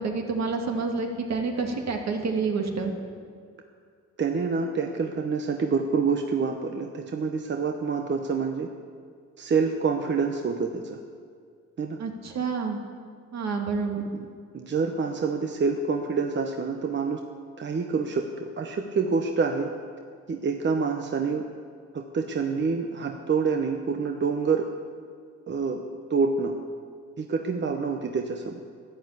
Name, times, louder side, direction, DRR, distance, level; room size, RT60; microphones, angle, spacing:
voice 1, 0.0-2.9 12.0-12.8 13.3-14.1, right 4 dB, 60° right, 2 dB, 2.1 m, -28 dB
voice 2, 4.2-8.7 9.4-11.0 11.8-12.0 14.1-14.3 14.5-17.2 17.6-19.7 20.3-21.4 21.9-24.7 25.5-25.8 26.1-26.5 27.2-28.6, right 5 dB, 40° right, 4 dB, 1.0 m, -27 dB
11.5 x 10.5 x 8.4 m, 2.1 s
cardioid pair, 90°, 30 cm